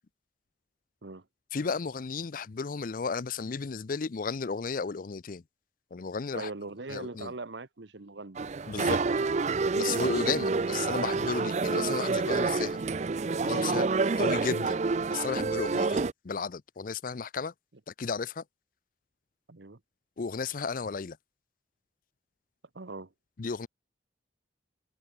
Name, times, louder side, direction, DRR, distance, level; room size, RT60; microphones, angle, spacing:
voice 1, 1.5-5.4 5.9-6.5 6.9-7.3 8.7-9.0 9.7-12.8 13.4-14.8 15.1-17.5 18.0-18.4 20.2-21.2 23.4-23.7, left 5 dB, 45° left, 0.5 m, -33 dB
voice 2, 6.3-8.4 10.5-10.7 19.5-19.8 22.7-23.1, right 3 dB, 65° right, 1.1 m, -41 dB
sound 1, 8.4-16.1, right 4 dB, 35° right, 0.4 m, -28 dB
head